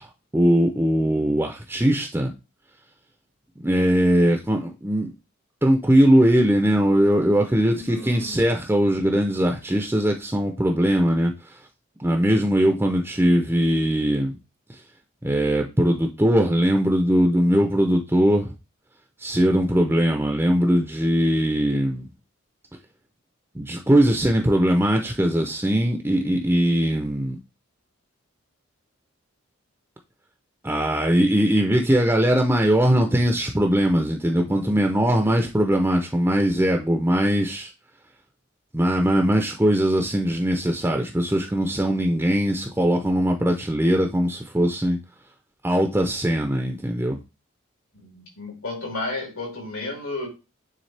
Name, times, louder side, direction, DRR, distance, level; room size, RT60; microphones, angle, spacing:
voice 1, 0.0-2.3 3.6-5.1 5.6-11.6 12.0-14.4 15.2-18.5 19.2-22.1 23.5-27.4 30.6-37.7 38.7-45.0 45.6-47.2, equal, 10° right, 0.5 m, -20 dB
voice 2, 7.7-8.5 48.0-50.3, left 2 dB, 90° left, 3.5 m, -33 dB
9.1 x 3.6 x 3.3 m
head